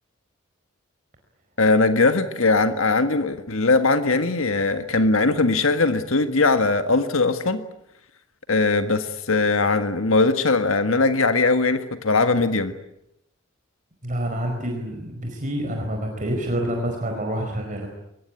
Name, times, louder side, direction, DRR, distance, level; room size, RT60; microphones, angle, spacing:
voice 1, 1.6-7.6 8.5-12.7, left 3 dB, 90° left, 9 dB, 1.7 m, -20 dB
voice 2, 14.0-17.9, right 1 dB, 40° right, 2 dB, 4.7 m, -27 dB
23.0 x 21.5 x 9.9 m, 0.83 s
head